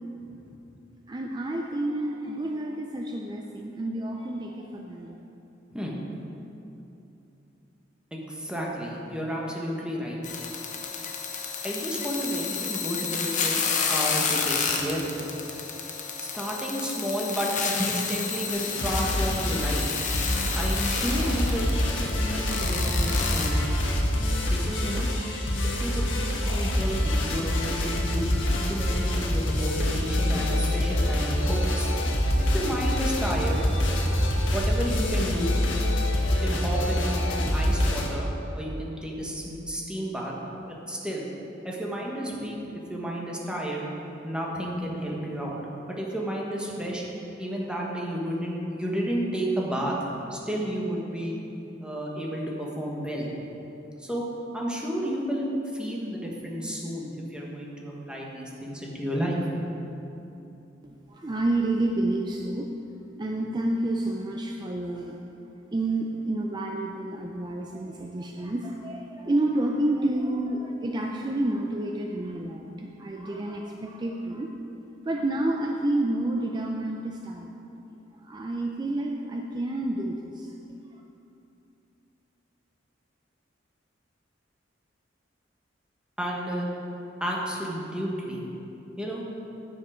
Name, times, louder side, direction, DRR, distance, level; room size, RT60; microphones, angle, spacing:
voice 1, 1.1-5.2 60.8-62.7 63.2-65.2 65.7-74.5 75.0-77.5 78.2-80.5, right 1 dB, 25° right, 1 dB, 0.4 m, -29 dB
voice 2, 8.1-10.2 11.6-15.1 16.2-19.8 20.5-23.6 24.5-25.1 25.8-31.9 32.4-33.7 34.5-35.8 36.3-38.3 38.5-40.3 40.7-41.3 41.6-43.9 44.2-45.6 45.9-47.0 47.4-50.0 50.3-51.4 51.8-53.3 54.0-54.2 54.5-55.5 55.7-59.5 86.2-86.7 87.2-88.4 89.0-89.2, equal, 5° right, -3 dB, 1.3 m, -31 dB
sound 1, 10.2-23.5, left 6 dB, 40° left, 0.8 m, -31 dB
sound 2, 18.5-38.1, left 1 dB, 85° left, 1.3 m, -26 dB
9.3 x 7.1 x 5.0 m, 2.9 s
head